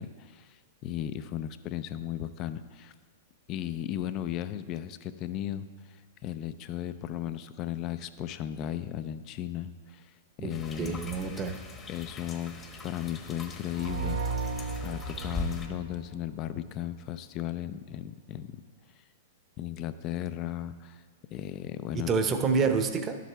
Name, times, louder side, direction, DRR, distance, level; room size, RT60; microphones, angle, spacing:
voice 1, 0.0-2.9 3.5-10.1 10.4-11.0 11.9-12.5 12.8-14.5 14.8-18.6 19.6-21.0 21.3-22.1, left 11 dB, 40° left, 13 dB, 0.5 m, -36 dB
sound 1, 10.5-15.7, left 3 dB, 25° left, 1.1 m, -40 dB
voice 2, 10.8-11.6 21.9-23.2, right 5 dB, 30° right, 8 dB, 0.8 m, -27 dB
sound 2, 13.7-16.5, right 4 dB, 70° right, 0.5 m, -35 dB
11.5 x 7.5 x 3.4 m, 1.5 s
hypercardioid pair, 115°, 0 cm